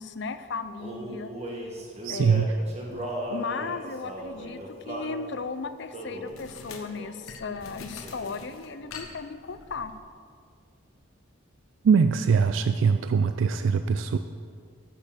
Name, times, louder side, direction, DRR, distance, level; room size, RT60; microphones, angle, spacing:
voice 1, 0.0-1.3 2.1-3.0 3.3-9.9, left 4 dB, 55° left, 11 dB, 0.5 m, -36 dB
Male singing, 0.8-5.2 5.9-6.3 7.0-7.3 7.5-8.5, right 1 dB, 30° right, 1.4 m, -37 dB
voice 2, 2.0-2.5 11.8-14.2, right 5 dB, 65° right, 9 dB, 0.3 m, -22 dB
sound 1, 4.2-4.4 6.3-10.0, left 4 dB, 85° left, 1.2 m, -45 dB
9.9 x 6.6 x 7.5 m, 2.2 s
head